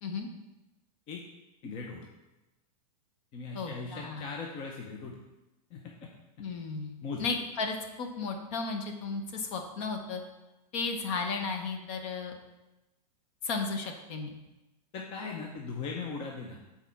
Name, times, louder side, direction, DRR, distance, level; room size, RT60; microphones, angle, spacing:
voice 1, 1.6-2.1 3.3-5.2 5.7-6.1 7.0-7.3 14.9-16.6, left 4 dB, 25° left, 0 dB, 0.7 m, -39 dB
voice 2, 3.5-4.3 6.4-6.9 7.2-10.2 10.7-12.4 13.4-14.3, left 4 dB, 45° left, 4 dB, 1.1 m, -34 dB
6.3 x 4.3 x 5.8 m, 1.0 s
supercardioid pair, 155°, 21 cm